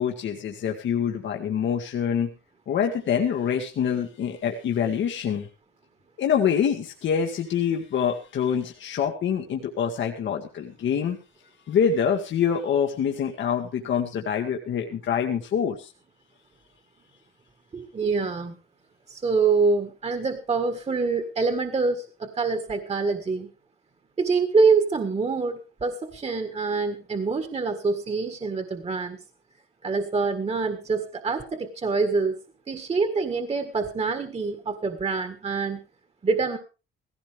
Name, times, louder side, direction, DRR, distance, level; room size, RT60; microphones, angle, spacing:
voice 1, 0.0-2.3 2.7-5.5 6.2-11.2 11.7-15.9, left 7 dB, 70° left, 2 dB, 1.8 m, -25 dB
voice 2, 17.7-18.6 19.1-23.5 24.2-29.2 29.8-32.4 32.7-35.8 36.2-36.6, right 4 dB, 30° right, 8 dB, 1.7 m, -25 dB
16.5 x 16.0 x 3.5 m, 0.32 s
cardioid pair, 90°, 20 cm